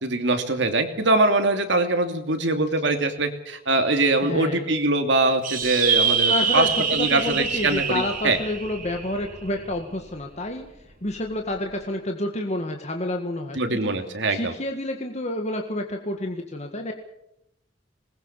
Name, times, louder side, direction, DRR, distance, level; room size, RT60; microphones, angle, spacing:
voice 1, 0.0-8.4 13.5-14.5, right 2 dB, 70° right, 6 dB, 2.9 m, -23 dB
voice 2, 4.2-4.7 6.3-10.7 11.0-13.9 14.3-16.9, left 1 dB, 35° left, 4 dB, 1.9 m, -29 dB
sound 1, 5.4-10.2, right 6 dB, 45° right, 3.5 m, -25 dB
21.0 x 20.5 x 7.4 m, 0.79 s
head